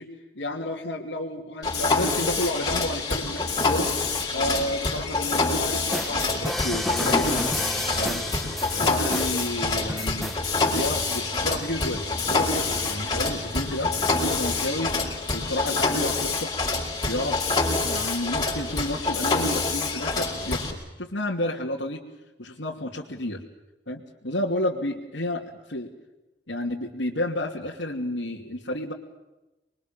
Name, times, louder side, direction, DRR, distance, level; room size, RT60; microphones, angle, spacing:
voice 1, 0.0-3.9 4.3-7.5 8.0-8.3 8.7-10.3 10.7-14.9 15.3-16.5 17.0-22.0 22.4-23.4 23.9-25.9 26.5-28.9, left 1 dB, 80° left, -3 dB, 2.9 m, -31 dB
Mechanisms, 1.6-20.7, left 3 dB, 20° left, 5.2 m, -26 dB
sound 1, 5.7-10.4, left 1 dB, ahead, 1.3 m, -31 dB
27.0 x 23.0 x 7.5 m, 1.0 s
head